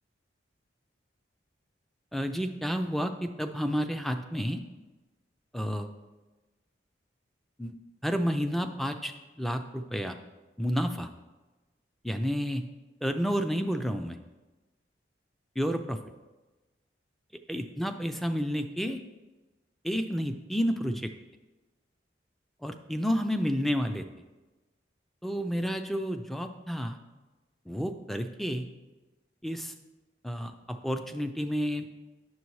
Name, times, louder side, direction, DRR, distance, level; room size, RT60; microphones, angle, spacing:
voice 1, 2.1-4.6 5.5-5.9 7.6-7.8 8.0-10.2 10.6-11.1 12.0-12.7 13.0-14.2 15.6-16.0 17.5-19.0 19.8-21.1 22.6-24.1 25.2-27.0 27.7-28.7 29.4-29.7 30.2-31.9, equal, ahead, 7 dB, 0.3 m, -30 dB
9.4 x 6.8 x 3.1 m, 1.2 s
head